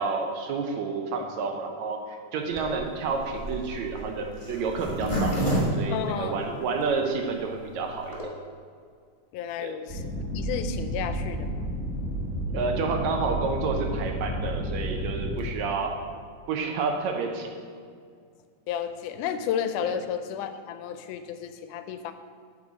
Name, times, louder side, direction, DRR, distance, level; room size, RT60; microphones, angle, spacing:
voice 1, 0.0-5.4 5.8-8.1 9.6-9.8 12.5-16.0 16.5-17.5 19.8-19.9, right 4 dB, 70° right, 3 dB, 2.0 m, -29 dB
Zipper (clothing), 2.5-6.8 7.3-7.4 7.6-7.7 7.9-8.2, right 1 dB, 20° left, 1.0 m, -29 dB
voice 2, 5.9-6.6 9.3-11.7 18.7-22.1, left 8 dB, 90° left, 10 dB, 2.1 m, -32 dB
sound 1, 9.9-15.4, right 1 dB, 30° right, 1.7 m, -31 dB
8.5 x 5.4 x 6.2 m, 2.1 s
omnidirectional pair, 3.5 m